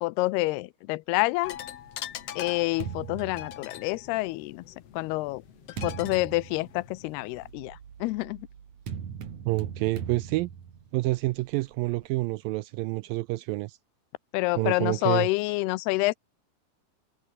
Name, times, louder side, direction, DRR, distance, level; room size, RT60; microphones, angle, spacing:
voice 1, 0.0-1.6 2.4-4.6 4.9-5.4 5.8-8.5 14.3-16.1, left 21 dB, 85° left, 2.7 m, -28 dB
sound 1, 1.4-7.5, left 11 dB, 70° left, 1.5 m, -43 dB
sound 2, 1.5-4.3 5.0-12.1, right 8 dB, 50° right, 3.7 m, -41 dB
voice 2, 9.5-10.5 10.9-13.8 14.6-15.3, right 20 dB, 85° right, 2.1 m, -28 dB
omnidirectional pair, 4.5 m